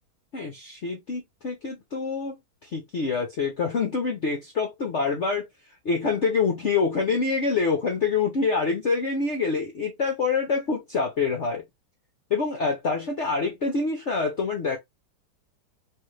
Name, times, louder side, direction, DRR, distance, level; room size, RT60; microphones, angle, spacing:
voice 1, 0.3-2.4 2.6-5.4 5.8-11.6 12.3-14.8, left 4 dB, 65° left, 0.7 m, -26 dB
3.4 x 2.6 x 3.1 m
omnidirectional pair, 2.2 m